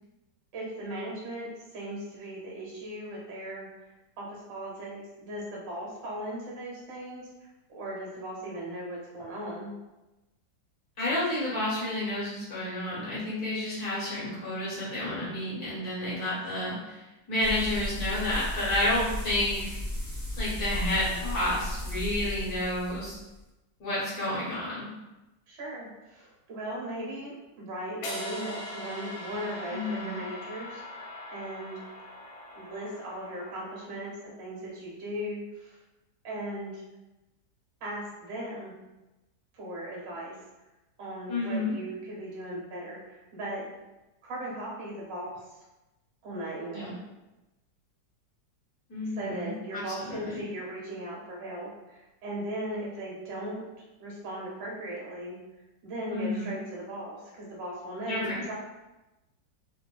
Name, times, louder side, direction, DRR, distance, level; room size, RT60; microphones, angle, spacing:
voice 1, 0.5-3.9 4.2-7.3 7.7-9.8 25.5-31.8 32.5-35.8 36.2-36.8 37.8-38.7 39.5-40.4 41.0-43.7 44.2-45.5 46.2-47.0 49.1-55.4 55.8-58.5, right 1 dB, 85° right, -4 dB, 1.7 m, -38 dB
voice 2, 11.0-19.8 20.4-23.2 23.8-24.9 29.7-30.2 41.3-41.7 46.7-46.9 48.9-50.4 56.1-56.5 58.1-58.5, left 1 dB, 60° left, -8 dB, 1.7 m, -30 dB
sound 1, 17.4-23.4, left 1 dB, 15° right, 0.7 m, -35 dB
sound 2, 28.0-34.2, left 2 dB, 90° left, 1.4 m, -41 dB
3.7 x 2.7 x 2.3 m, 1.0 s
omnidirectional pair, 1.9 m